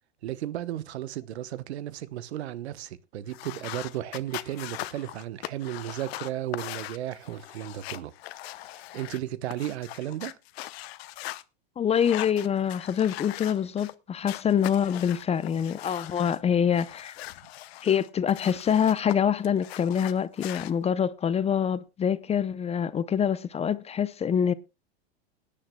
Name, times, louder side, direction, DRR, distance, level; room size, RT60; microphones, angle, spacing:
voice 1, 0.2-8.1 8.7-10.4, right 13 dB, 80° right, 0.9 m, -34 dB
sound 1, 3.3-11.4 11.9-13.9 14.2-16.4 16.7-19.2 19.4-20.7, left 17 dB, 70° left, 0.8 m, -40 dB
voice 2, 11.8-17.1 17.8-24.5, left 8 dB, 20° left, 0.6 m, -25 dB
21.5 x 10.0 x 2.2 m
hypercardioid pair, 105°, 32 cm